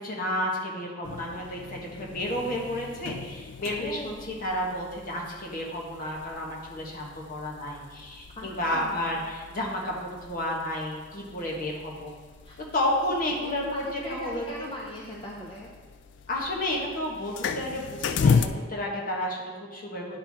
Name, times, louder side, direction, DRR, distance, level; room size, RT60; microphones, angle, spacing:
voice 1, 0.0-12.1 12.6-13.8 14.1-14.7 16.3-20.2, left 1 dB, 50° left, -2 dB, 1.4 m, -31 dB
sound 1, 1.0-18.5, left 5 dB, 75° left, 0.3 m, -35 dB
voice 2, 3.6-4.4 8.4-9.3 12.4-12.7 13.3-15.7, left 1 dB, 30° left, -3 dB, 0.6 m, -40 dB
10.0 x 4.6 x 3.6 m, 1.4 s
head